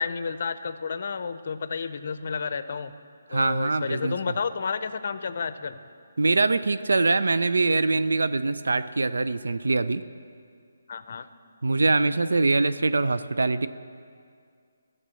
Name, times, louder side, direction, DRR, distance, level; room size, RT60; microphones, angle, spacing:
voice 1, 0.0-2.9 3.3-5.8 10.9-11.3, left 5 dB, 55° left, 12 dB, 0.6 m, -31 dB
voice 2, 3.3-4.2 6.2-10.0 11.6-13.7, right 3 dB, 80° right, 13 dB, 0.4 m, -23 dB
13.0 x 6.7 x 7.5 m, 2.3 s
hypercardioid pair, 155°, 0 cm